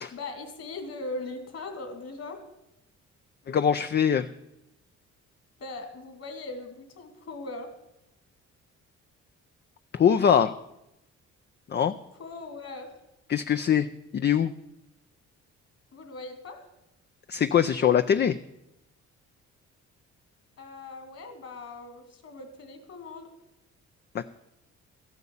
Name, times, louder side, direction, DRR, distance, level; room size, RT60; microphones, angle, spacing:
voice 1, 0.1-2.4 5.6-7.7 12.2-12.9 15.9-16.6 20.6-23.3, left 2 dB, 55° left, 6 dB, 2.7 m, -39 dB
voice 2, 3.5-4.3 9.9-10.5 11.7-12.0 13.3-13.9 14.1-14.5 17.3-18.4 24.1-24.3, left 8 dB, 35° left, 10 dB, 0.5 m, -22 dB
13.5 x 8.1 x 7.2 m, 0.89 s
cardioid pair, 90°, 30 cm